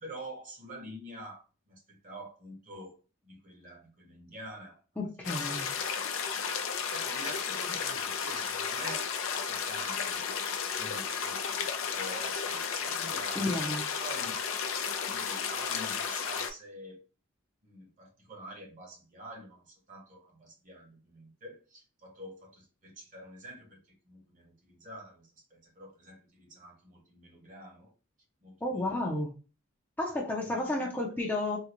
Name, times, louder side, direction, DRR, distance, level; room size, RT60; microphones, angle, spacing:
voice 1, 0.0-3.0 3.2-4.8 5.2-5.9 6.9-9.1 9.5-10.3 10.7-13.7 14.0-14.4 15.1-17.0 17.6-23.8 24.1-27.9 28.4-29.1 30.4-30.9, right 1 dB, 40° right, 1.1 m, -47 dB
voice 2, 5.0-5.7 13.3-13.8 28.6-29.3 30.0-31.6, left 1 dB, 10° left, 0.6 m, -32 dB
sound 1, 5.2-16.5, left 6 dB, 85° left, 0.5 m, -33 dB
3.8 x 2.3 x 2.9 m
head